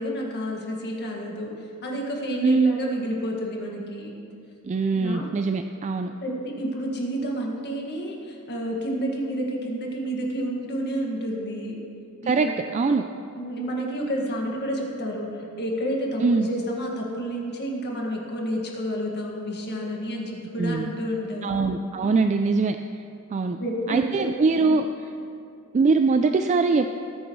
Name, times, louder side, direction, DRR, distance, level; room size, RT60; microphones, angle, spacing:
voice 1, 0.0-4.1 4.9-5.2 6.2-6.3 6.6-11.8 12.2-12.5 13.3-21.6 23.6-24.3 24.6-24.8, equal, 50° left, -1 dB, 1.9 m, -30 dB
voice 2, 2.4-2.7 4.6-6.1 12.3-13.0 16.2-16.5 20.6-20.9 21.4-22.8 23.3-23.6 23.9-24.9 25.7-26.9, right 4 dB, 30° right, 7 dB, 0.3 m, -22 dB
19.5 x 8.9 x 3.2 m, 2.6 s
head